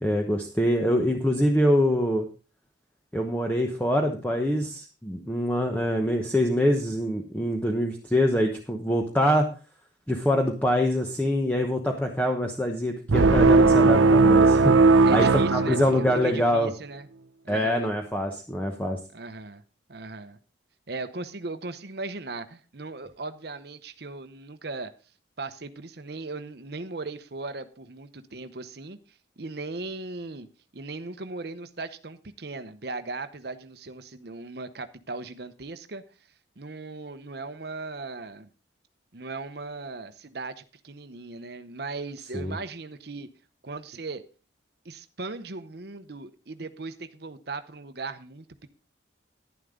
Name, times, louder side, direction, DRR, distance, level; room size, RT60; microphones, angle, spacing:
voice 1, 0.0-2.3 3.1-9.5 10.1-14.7 15.1-16.7 17.5-19.0 42.3-42.6, equal, 10° left, 2 dB, 1.0 m, -24 dB
sound 1, 13.1-16.4, right 3 dB, 90° right, 0.7 m, -18 dB
voice 2, 15.0-17.1 17.4-17.9 19.1-19.6 19.9-20.4 20.9-24.9 25.4-29.0 29.4-30.5 30.7-36.0 36.6-38.5 39.1-43.3 43.6-44.2 44.8-48.7, right 3 dB, 55° right, 10 dB, 0.9 m, -38 dB
11.5 x 10.5 x 3.7 m, 0.34 s
head